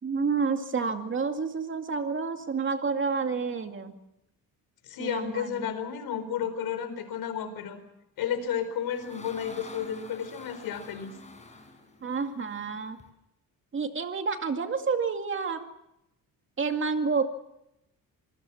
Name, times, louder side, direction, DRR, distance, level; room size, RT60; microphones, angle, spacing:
voice 1, 0.0-3.9 5.0-5.7 12.0-13.0 13.7-15.7 16.6-17.2, right 5 dB, 35° right, 6 dB, 2.3 m, -29 dB
voice 2, 4.8-7.8 8.2-11.2, left 8 dB, 80° left, 10 dB, 4.6 m, -32 dB
sound 1, 8.4-13.1, left 3 dB, 20° left, 5.1 m, -48 dB
27.0 x 20.5 x 7.2 m, 0.87 s
cardioid pair, 130°, 36 cm